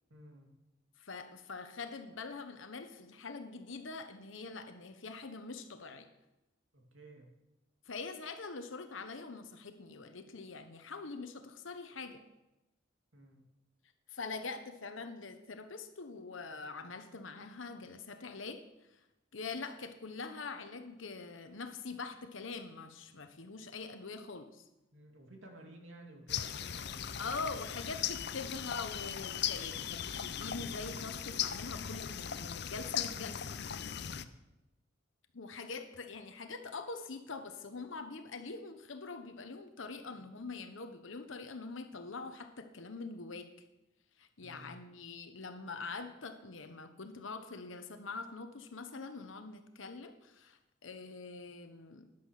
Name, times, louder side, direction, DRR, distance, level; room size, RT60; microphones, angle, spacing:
voice 1, 0.1-0.5 6.7-7.3 13.1-13.5 24.9-28.0 33.9-34.3 44.4-44.8, right 1 dB, 75° right, 2 dB, 2.6 m, -55 dB
voice 2, 1.0-6.1 7.9-12.2 14.1-18.6 19.3-24.6 27.2-33.6 35.3-43.5 44.2-52.1, left 4 dB, 80° left, 8 dB, 1.0 m, -44 dB
sound 1, 26.3-34.3, left 9 dB, 55° left, 0.6 m, -38 dB
10.5 x 9.6 x 6.5 m, 0.97 s
head